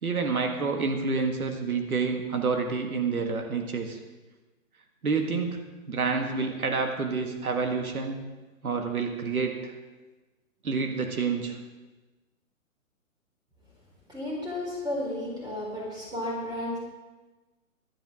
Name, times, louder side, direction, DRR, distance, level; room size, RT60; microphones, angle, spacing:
voice 1, 0.0-4.0 5.0-5.6 5.9-8.2 8.6-9.7 10.6-11.6, right 4 dB, 90° right, 4 dB, 1.8 m, -28 dB
voice 2, 14.1-16.8, left 1 dB, 10° right, -4 dB, 4.0 m, -33 dB
15.0 x 12.0 x 3.7 m, 1.2 s
hypercardioid pair, 145°, 42 cm